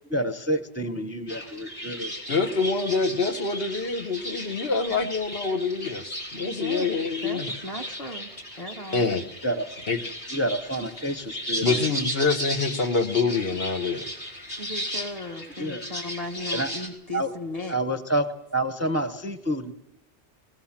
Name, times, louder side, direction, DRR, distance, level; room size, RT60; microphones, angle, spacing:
voice 1, 0.1-2.2 9.4-9.7 10.3-12.0 15.6-15.8 16.5-16.7 17.1-17.3 17.7-18.3 18.5-19.7, right 1 dB, 15° right, 10 dB, 0.8 m, -28 dB
sound 1, 1.3-16.9, equal, 85° left, 4.9 m, -35 dB
voice 2, 2.3-7.5 8.9-9.2 9.9-10.0 11.6-14.1, left 4 dB, 65° left, 5 dB, 1.4 m, -26 dB
voice 3, 6.3-6.9 7.2-8.3 8.6-9.1 14.6-17.8, left 1 dB, 35° left, 3 dB, 1.8 m, -36 dB
19.5 x 19.0 x 7.3 m, 0.84 s
omnidirectional pair, 1.1 m